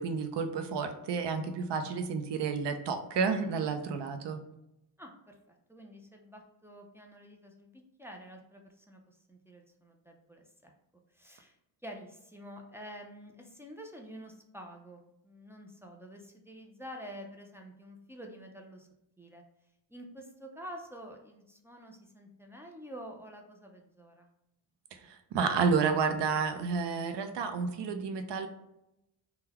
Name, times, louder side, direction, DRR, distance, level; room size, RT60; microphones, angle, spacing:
voice 1, 0.0-4.4 24.9-28.5, right 5 dB, 60° right, 7 dB, 0.6 m, -31 dB
voice 2, 5.0-10.7 11.1-11.6 11.8-18.9 19.2-19.4 19.9-24.3, equal, 5° right, 1 dB, 0.3 m, -48 dB
3.7 x 2.2 x 2.9 m, 0.86 s
cardioid pair, 100°, 47 cm